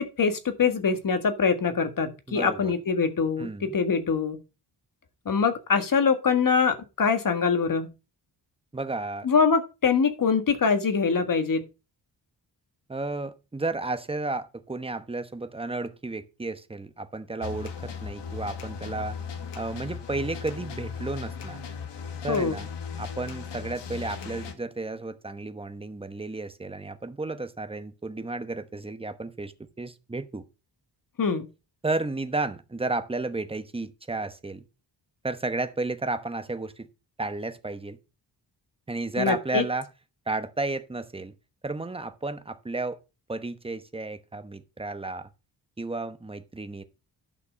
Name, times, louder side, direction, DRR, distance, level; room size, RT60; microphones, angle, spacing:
voice 1, 0.0-4.4 5.3-7.9 9.2-11.7 22.3-22.6 31.2-31.5 39.2-39.6, left 5 dB, 50° left, 1.7 m, -24 dB
voice 2, 2.3-2.7 3.4-3.7 8.7-9.3 12.9-19.2 19.5-21.6 22.2-22.7 23.0-30.4 31.8-34.6 35.2-36.9 37.2-38.0 38.9-39.9 40.3-41.3 41.6-43.0 43.3-45.3 45.8-46.8, right 3 dB, 15° right, 1.0 m, -32 dB
sound 1, 17.4-24.5, left 6 dB, 90° left, 1.6 m, -37 dB
11.0 x 5.9 x 5.1 m
wide cardioid pair, 110°, 41 cm